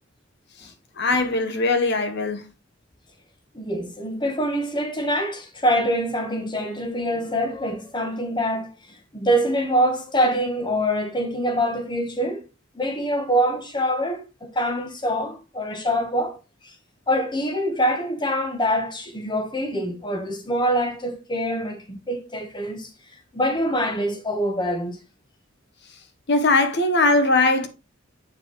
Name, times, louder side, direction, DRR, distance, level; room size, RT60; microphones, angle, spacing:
voice 1, 1.0-2.4 26.3-27.7, left 2 dB, 60° left, 1.0 m, -20 dB
voice 2, 3.5-12.4 12.7-16.4 16.6-16.7 17.1-22.9 23.3-25.0, equal, 25° left, 1.2 m, -25 dB
7.9 x 4.9 x 3.0 m
head